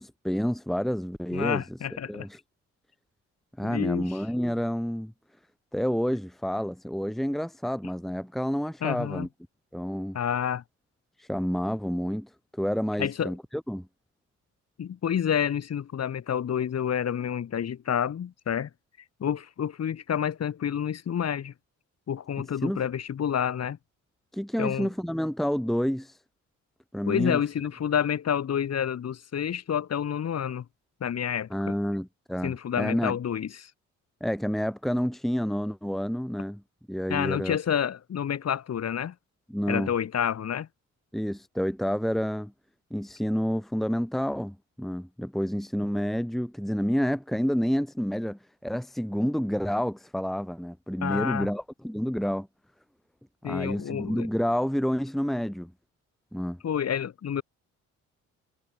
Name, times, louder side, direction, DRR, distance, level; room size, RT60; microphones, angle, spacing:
voice 1, 0.0-1.6 2.1-2.4 3.6-5.1 5.7-9.3 9.7-10.2 11.3-12.3 12.6-13.4 13.7-13.9 22.4-22.8 24.3-26.1 26.9-27.4 31.5-33.2 34.2-36.6 36.9-37.6 39.5-39.9 41.1-42.5 42.9-52.5 53.4-55.7 56.3-56.6, equal, ahead, 1.5 m, -29 dB
voice 2, 1.3-2.3 3.6-4.1 8.8-9.3 10.1-10.6 13.0-13.3 14.8-18.7 19.2-21.5 22.1-23.8 24.6-24.9 27.1-30.6 31.0-31.7 32.4-33.7 37.1-39.1 39.7-40.7 51.0-51.5 53.4-54.3 56.6-57.4, left 8 dB, 55° left, 5.1 m, -29 dB
cardioid pair, 90°, 30 cm